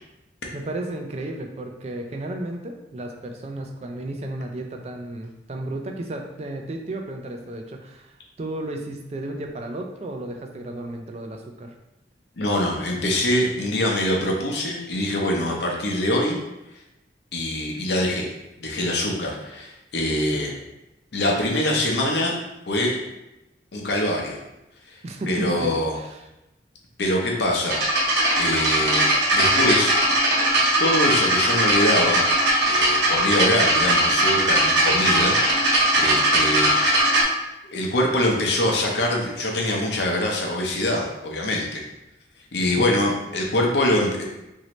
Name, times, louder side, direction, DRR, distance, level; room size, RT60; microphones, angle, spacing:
voice 1, 0.5-11.7 20.3-20.6 25.0-26.2 42.8-43.0, right 1 dB, 35° right, 3 dB, 0.3 m, -33 dB
voice 2, 12.4-16.4 17.3-18.3 18.6-20.5 21.1-22.3 22.7-23.0 23.7-24.4 24.9-25.0 25.3-25.9 27.0-29.0 29.3-29.9 30.8-32.2 32.6-35.4 36.0-37.0 37.7-41.8 42.5-44.2, left 1 dB, 65° left, -1 dB, 0.7 m, -24 dB
sound 1, 27.7-37.2, right 1 dB, 70° right, 0.8 m, -20 dB
3.0 x 2.7 x 3.0 m, 0.93 s
head